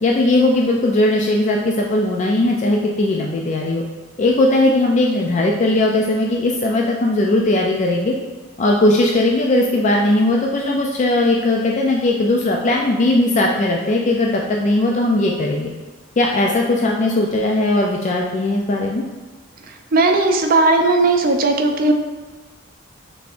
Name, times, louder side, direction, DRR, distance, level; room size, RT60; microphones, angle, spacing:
voice 1, 0.0-3.8 4.2-8.1 8.6-15.7 16.2-19.0, left 2 dB, 35° left, 0 dB, 0.3 m, -18 dB
voice 2, 19.9-21.9, right 2 dB, 45° right, 4 dB, 0.5 m, -16 dB
5.9 x 3.4 x 2.5 m, 1.3 s
head